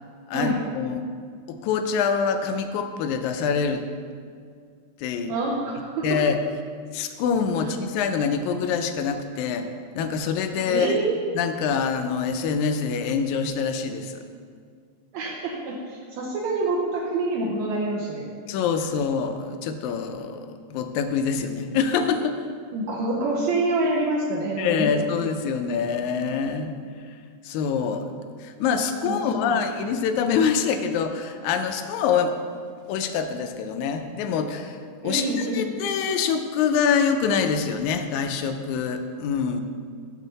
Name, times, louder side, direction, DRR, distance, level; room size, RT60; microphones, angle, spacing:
voice 1, 0.3-1.1 1.5-3.9 5.0-5.3 6.0-6.4 6.9-9.7 10.0-10.9 11.3-14.2 18.5-22.6 24.6-26.8 27.4-32.4 32.9-39.6, left 6 dB, 85° left, 7 dB, 2.0 m, -25 dB
voice 2, 5.3-6.0 7.6-7.7 10.6-11.1 15.1-18.3 22.7-24.9 29.0-29.7 35.0-35.7, right 2 dB, 75° right, -4 dB, 2.0 m, -27 dB
7.3 x 6.6 x 4.0 m, 2.1 s
omnidirectional pair, 3.4 m